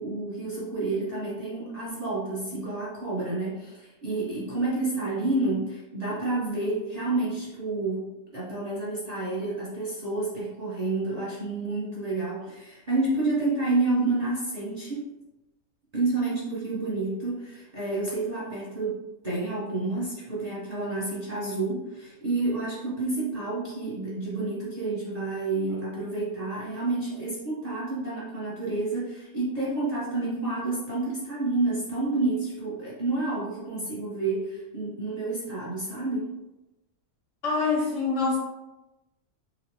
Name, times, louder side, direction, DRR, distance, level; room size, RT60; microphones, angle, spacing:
voice 1, 0.0-8.0 8.3-15.1 15.9-36.3, right 2 dB, 35° right, -7 dB, 0.7 m, -29 dB
voice 2, 37.4-38.4, left 4 dB, 70° left, -1 dB, 0.8 m, -25 dB
4.2 x 2.1 x 2.7 m, 1.0 s
omnidirectional pair, 1.6 m